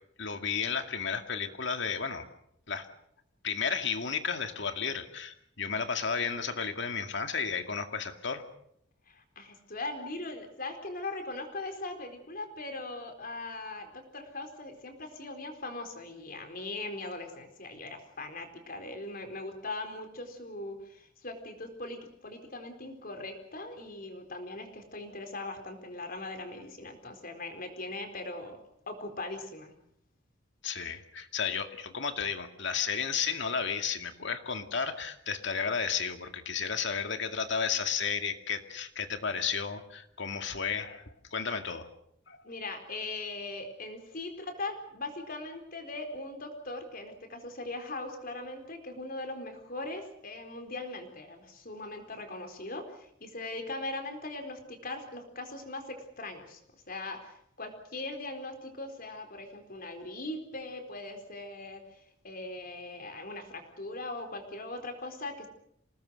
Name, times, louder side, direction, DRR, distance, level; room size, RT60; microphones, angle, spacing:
voice 1, 0.2-2.3 2.7-2.9 3.4-8.4 30.6-41.0 41.3-41.9 42.3-42.4, left 6 dB, 65° left, 7 dB, 2.2 m, -33 dB
voice 2, 9.1-29.7 42.4-65.5, left 2 dB, 50° left, 5 dB, 4.2 m, -40 dB
27.5 x 19.5 x 6.5 m, 0.74 s
head